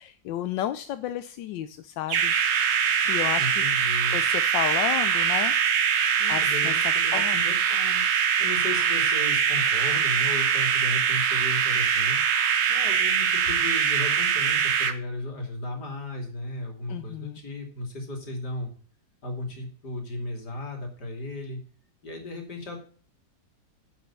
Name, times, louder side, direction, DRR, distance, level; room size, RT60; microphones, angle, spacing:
voice 1, 0.0-2.3 3.0-3.6 4.1-5.5 6.0-6.7 7.1-7.4 16.9-17.4, left 12 dB, 90° left, 11 dB, 1.3 m, -32 dB
sound 1, 2.1-14.9, right 7 dB, 80° right, 1.6 m, -23 dB
voice 2, 3.4-4.2 6.2-12.2 12.7-18.7 19.2-21.6 22.0-22.8, left 2 dB, 65° left, 3 dB, 3.3 m, -35 dB
10.5 x 5.7 x 7.1 m, 0.42 s
omnidirectional pair, 1.9 m